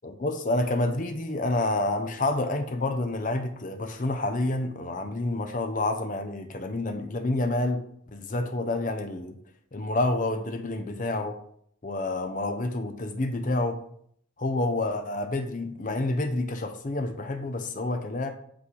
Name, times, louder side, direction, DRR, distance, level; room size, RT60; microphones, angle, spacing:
voice 1, 0.0-9.4 9.7-11.4 11.8-13.8 14.4-18.3, left 2 dB, 40° left, 6 dB, 0.6 m, -28 dB
8.3 x 3.9 x 3.2 m, 0.66 s
head